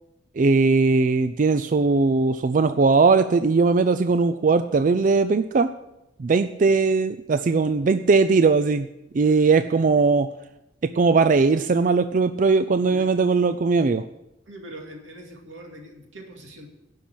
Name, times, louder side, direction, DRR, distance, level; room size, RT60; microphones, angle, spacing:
voice 1, 0.4-5.7 6.2-8.9 9.1-10.3 10.9-14.0, right 4 dB, 45° right, 11 dB, 0.4 m, -19 dB
voice 2, 14.5-16.7, equal, 85° right, 2 dB, 2.4 m, -42 dB
11.0 x 5.8 x 8.8 m, 0.90 s
head